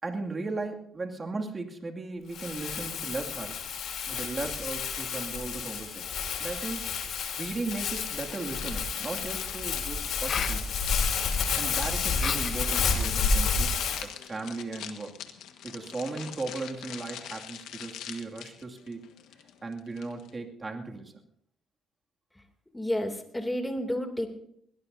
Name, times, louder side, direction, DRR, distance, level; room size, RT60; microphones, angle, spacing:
voice 1, 0.0-3.6 4.1-6.1 6.4-6.8 7.4-10.7 11.6-15.2 15.6-19.0 19.6-21.1, right 3 dB, 30° right, 2 dB, 2.4 m, -36 dB
Crumpling crinkling, 2.3-14.0, left 5 dB, 75° left, 3.3 m, -30 dB
sound 1, 7.7-20.3, left 10 dB, 90° left, 1.5 m, -44 dB
sound 2, 10.1-10.6 12.1-12.7 13.2-13.7, left 7 dB, 50° left, 0.8 m, -35 dB
voice 2, 22.7-24.3, left 1 dB, 10° left, 4 dB, 2.8 m, -30 dB
21.5 x 17.5 x 2.7 m, 0.69 s
cardioid pair, 90°, 0 cm